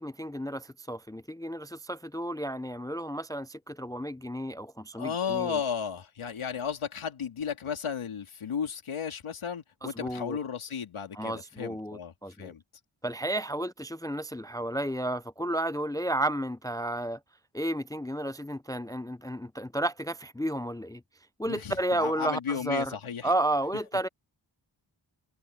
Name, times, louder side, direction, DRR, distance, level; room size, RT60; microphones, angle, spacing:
voice 1, 0.0-5.6 9.8-10.4 11.1-12.5 13.0-17.2 17.5-21.0 21.4-23.0 23.2-24.1, right 1 dB, 10° left, 0.4 m, -32 dB
voice 2, 4.9-12.6 21.4-23.3, left 7 dB, 85° left, 3.1 m, -34 dB
open air
cardioid pair, 60°, 48 cm